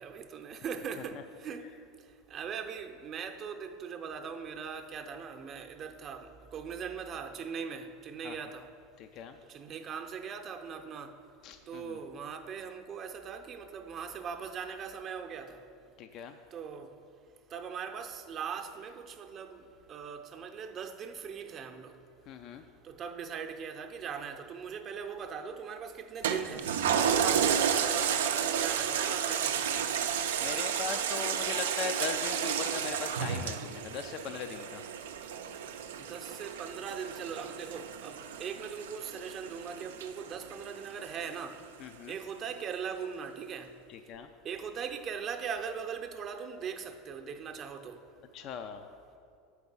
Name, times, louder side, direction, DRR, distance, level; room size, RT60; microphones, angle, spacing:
voice 1, 0.0-1.7 2.3-8.7 9.5-11.1 11.7-15.6 16.5-16.9 17.5-19.6 19.9-21.9 22.8-26.7 26.9-29.8 36.0-41.6 42.1-43.7 44.4-48.0, right 6 dB, 40° right, 0.6 m, -40 dB
voice 2, 9.0-9.4 11.4-12.0 16.0-16.4 22.3-22.6 30.4-34.8 41.8-42.2 43.9-44.3 48.3-48.9, left 7 dB, 50° left, 0.4 m, -39 dB
Toilet flush, 26.2-41.1 41.5-41.6, right 8 dB, 85° right, 0.4 m, -32 dB
7.8 x 4.7 x 5.4 m
hypercardioid pair, 100°, 0 cm